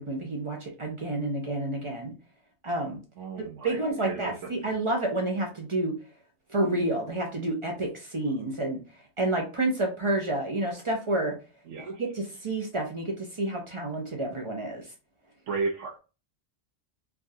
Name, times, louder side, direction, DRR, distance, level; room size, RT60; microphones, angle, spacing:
voice 1, 0.0-2.1 2.6-3.0 3.6-5.9 6.5-8.8 9.2-11.3 11.8-14.8, right 2 dB, 45° right, 1 dB, 0.4 m, -29 dB
voice 2, 3.2-4.5 11.7-12.0 15.5-16.0, right 4 dB, 70° right, 1 dB, 0.9 m, -34 dB
3.4 x 2.3 x 2.6 m, 0.32 s
omnidirectional pair, 1.4 m